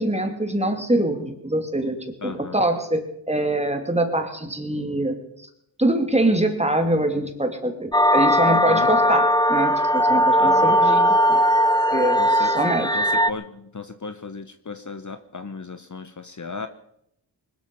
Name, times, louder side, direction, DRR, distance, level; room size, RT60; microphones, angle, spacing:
voice 1, 0.0-5.5 5.8-11.4 11.9-12.9, right 1 dB, 15° right, 5 dB, 2.8 m, -24 dB
voice 2, 2.2-2.6 8.5-9.1 10.4-10.8 12.2-12.5 12.8-16.7, left 4 dB, 40° left, 10 dB, 1.0 m, -36 dB
sound 1, 7.9-13.3, equal, 10° left, 0.8 m, -18 dB
20.5 x 12.5 x 5.5 m, 0.77 s
cardioid pair, 60°, 45 cm